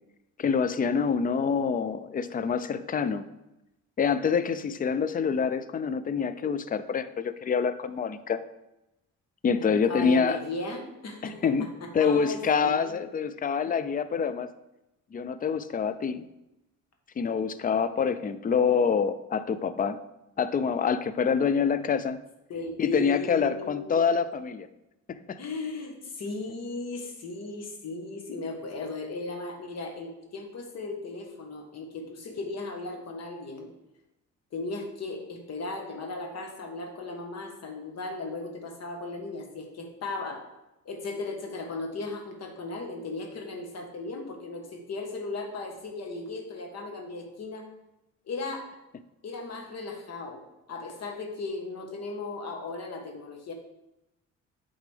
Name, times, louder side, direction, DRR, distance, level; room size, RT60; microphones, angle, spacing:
voice 1, 0.4-3.2 4.0-8.4 9.4-10.4 11.2-11.7 11.9-14.5 15.1-16.2 17.2-20.0 20.4-22.2 22.8-24.7 25.1-25.4, left 6 dB, 30° left, 13 dB, 0.4 m, -26 dB
voice 2, 9.6-11.4 11.8-13.2 22.5-24.2 25.4-33.7 34.5-40.4 40.8-47.7 48.3-48.7 49.2-50.4 50.7-53.5, left 3 dB, 60° left, 3 dB, 1.4 m, -36 dB
8.1 x 3.9 x 3.4 m, 0.92 s
cardioid pair, 90°, 30 cm